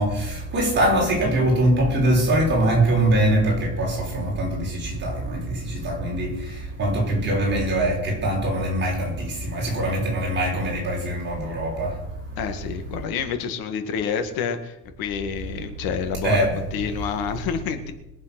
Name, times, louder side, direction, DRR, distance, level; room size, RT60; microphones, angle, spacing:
voice 1, 0.0-11.9 16.2-16.6, right 1 dB, 30° right, -1 dB, 4.9 m, -23 dB
voice 2, 12.4-17.9, left 7 dB, 80° left, 7 dB, 2.0 m, -28 dB
22.0 x 7.4 x 6.1 m, 0.96 s
cardioid pair, 175°, 35 cm